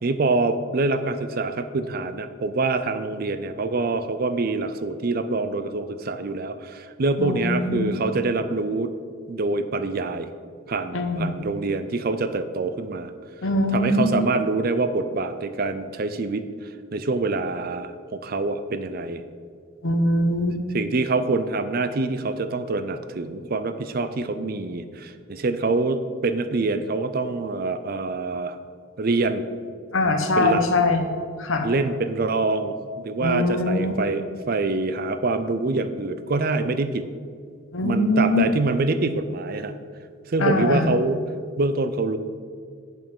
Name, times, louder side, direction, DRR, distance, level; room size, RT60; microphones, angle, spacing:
voice 1, 0.0-8.9 9.3-10.3 10.7-13.1 13.7-16.5 16.9-19.2 20.7-28.6 29.0-29.4 30.4-30.6 31.6-37.1 37.8-39.7 40.3-41.2 41.6-42.2, right 3 dB, 45° right, 11 dB, 0.5 m, -25 dB
voice 2, 7.2-7.9 10.9-11.5 13.4-14.2 19.8-20.6 29.9-31.7 33.2-33.9 37.7-38.4 40.4-40.9, left 2 dB, 70° left, 6 dB, 0.9 m, -22 dB
9.0 x 5.4 x 5.4 m, 2.1 s
head